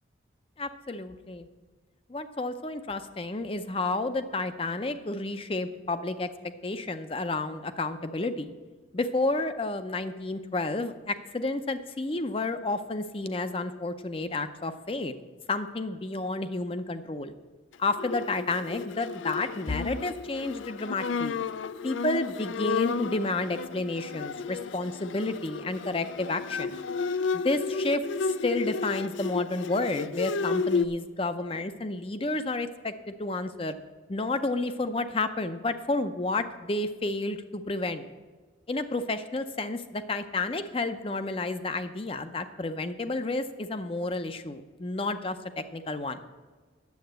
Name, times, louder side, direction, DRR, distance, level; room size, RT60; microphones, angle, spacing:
voice 1, 0.6-1.5 2.1-8.6 8.9-15.1 15.5-17.3 17.8-21.4 21.8-26.8 27.3-33.7 34.1-38.1 38.7-46.2, left 2 dB, 30° left, 10 dB, 0.5 m, -31 dB
Bowed string instrument, 17.9-30.9, left 5 dB, 85° left, 0.4 m, -32 dB
9.4 x 7.7 x 7.9 m, 1.4 s
head